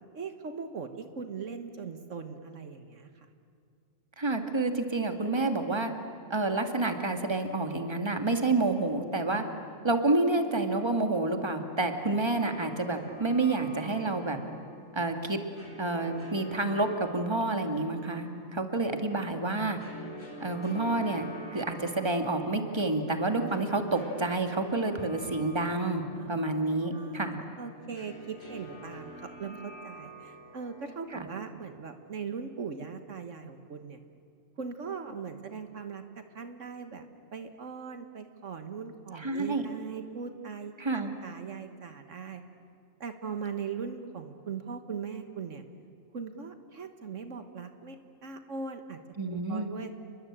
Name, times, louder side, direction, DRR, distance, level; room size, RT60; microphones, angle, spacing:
voice 1, 0.1-3.3 26.1-26.4 26.9-29.1 29.4-34.0 34.6-37.1 37.3-42.4 43.0-45.6 46.1-49.0 49.3-49.9, right 5 dB, 70° right, 7 dB, 1.7 m, -40 dB
voice 2, 4.2-5.9 6.3-9.4 9.8-14.4 14.9-15.4 15.8-19.8 20.4-27.4 31.1-31.2 39.1-39.6 40.8-41.1 49.2-49.7, right 2 dB, 20° right, 6 dB, 2.0 m, -29 dB
sound 1, 12.1-31.1, right 1 dB, 80° left, 5.2 m, -47 dB
29.5 x 22.0 x 8.8 m, 2.4 s
omnidirectional pair, 1.4 m